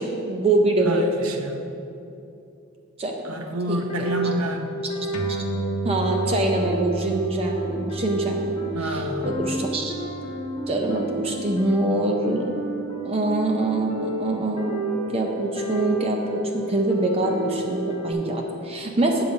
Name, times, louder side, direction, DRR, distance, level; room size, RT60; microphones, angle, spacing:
voice 1, 0.0-1.1 3.0-3.3 3.7-4.1 4.8-4.9 5.3-5.4 5.8-9.9 10.7-12.5 13.0-14.8 15.1-19.2, right 2 dB, 30° right, 1 dB, 0.5 m, -25 dB
voice 2, 0.9-1.6 3.2-4.7 8.7-9.3, equal, 80° right, 4 dB, 0.7 m, -29 dB
sound 1, 3.7-18.1, right 1 dB, 30° left, 0.9 m, -31 dB
sound 2, 5.1-12.0, right 2 dB, 85° left, 0.7 m, -33 dB
8.4 x 3.9 x 6.9 m, 2.7 s
head